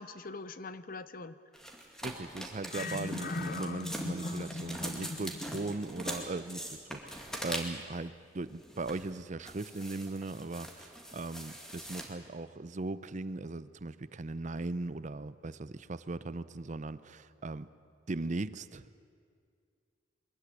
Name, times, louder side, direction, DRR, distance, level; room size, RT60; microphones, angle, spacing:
voice 1, 0.0-1.3 2.7-5.2 5.6-5.7, left 2 dB, 45° left, 14 dB, 0.7 m, -39 dB
sound 1, 1.5-7.9 8.6-9.1 9.5-12.0, equal, 5° left, 2.2 m, -42 dB
voice 2, 2.0-17.7 18.1-19.0, right 2 dB, 40° right, 15 dB, 0.6 m, -39 dB
22.5 x 14.5 x 9.9 m, 2.3 s
head